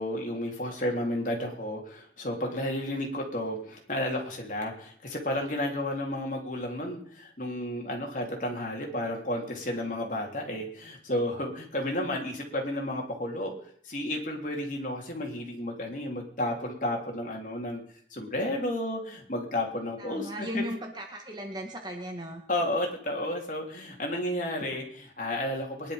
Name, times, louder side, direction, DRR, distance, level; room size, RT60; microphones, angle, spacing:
voice 1, 0.0-13.5 13.9-17.8 18.1-20.6 22.5-25.9, left 1 dB, 45° left, 1 dB, 3.6 m, -32 dB
voice 2, 20.0-22.4, equal, 25° right, 2 dB, 1.9 m, -37 dB
21.5 x 11.0 x 5.3 m, 0.62 s
head